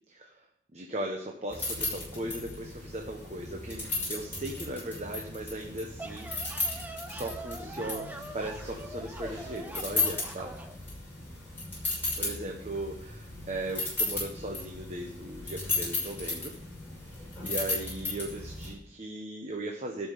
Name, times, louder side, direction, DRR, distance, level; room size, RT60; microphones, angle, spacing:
voice 1, 0.1-0.4 0.7-6.3 6.7-10.5 12.2-16.5 17.0-20.1, right 1 dB, 35° right, 1 dB, 1.1 m, -38 dB
Small metal objects moving, 1.5-18.7, left 3 dB, 10° left, 5.8 m, -35 dB
sound 1, 6.0-10.8, right 1 dB, 10° right, 0.6 m, -43 dB
12.5 x 6.1 x 6.8 m, 0.72 s
head